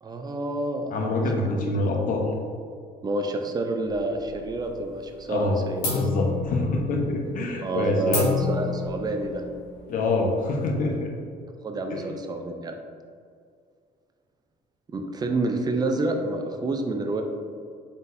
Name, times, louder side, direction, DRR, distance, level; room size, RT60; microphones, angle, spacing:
voice 1, 0.0-0.9 1.4-1.8 3.0-5.9 7.6-9.4 11.6-12.7 14.9-17.2, right 2 dB, 25° right, 4 dB, 0.4 m, -28 dB
voice 2, 0.9-2.3 5.3-5.6 5.9-8.3 9.9-11.1 11.9-12.0, left 2 dB, 55° left, 1 dB, 0.7 m, -25 dB
sound 1, 3.9-4.8 5.1-5.5 5.8-11.0, left 4 dB, 80° left, 1.5 m, -31 dB
4.0 x 3.9 x 2.6 m, 2.2 s
cardioid pair, 110°, 17 cm